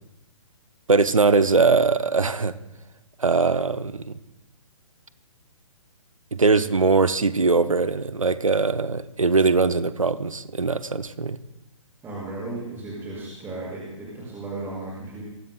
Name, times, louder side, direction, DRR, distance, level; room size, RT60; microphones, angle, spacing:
voice 1, 0.9-2.5 3.2-4.0 6.3-11.4, right 4 dB, 80° right, 13 dB, 0.8 m, -21 dB
voice 2, 12.0-15.2, right 2 dB, 15° right, -6 dB, 5.9 m, -35 dB
23.0 x 17.5 x 2.2 m, 0.95 s
figure-of-eight pair, 130°, 17 cm